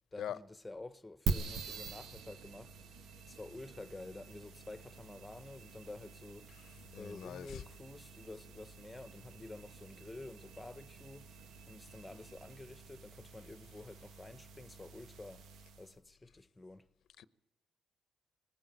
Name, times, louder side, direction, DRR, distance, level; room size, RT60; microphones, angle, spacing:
voice 1, 0.1-2.7 3.3-11.3 11.7-15.5 15.8-16.9, left 2 dB, 15° left, 1.1 m, -50 dB
sound 1, 1.3-16.0, right 4 dB, 80° right, 1.5 m, -45 dB
voice 2, 6.9-7.6 17.2-17.3, left 10 dB, 70° left, 0.9 m, -42 dB
21.0 x 18.0 x 9.2 m
cardioid pair, 90°, 0 cm